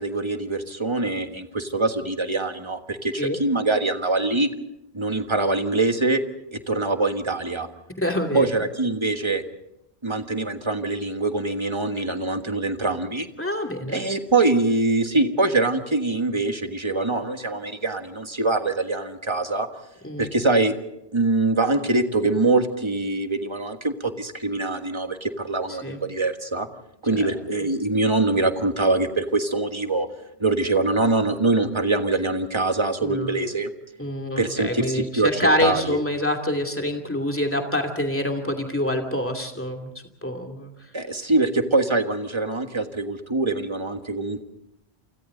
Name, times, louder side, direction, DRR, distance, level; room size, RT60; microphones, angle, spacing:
voice 1, 0.0-4.5 4.9-6.2 6.5-7.7 8.3-9.4 10.0-13.3 13.9-19.7 20.2-20.7 21.1-26.7 27.0-30.1 30.4-33.7 34.4-36.0 40.9-44.4, right 2 dB, 25° right, 6 dB, 1.5 m, -23 dB
voice 2, 8.0-8.6 13.4-14.0 20.0-20.3 25.7-26.0 27.1-27.6 33.0-33.4 34.0-39.9 40.2-40.7, left 1 dB, 10° left, 2 dB, 2.6 m, -26 dB
29.5 x 25.0 x 3.9 m, 0.84 s
omnidirectional pair, 1.1 m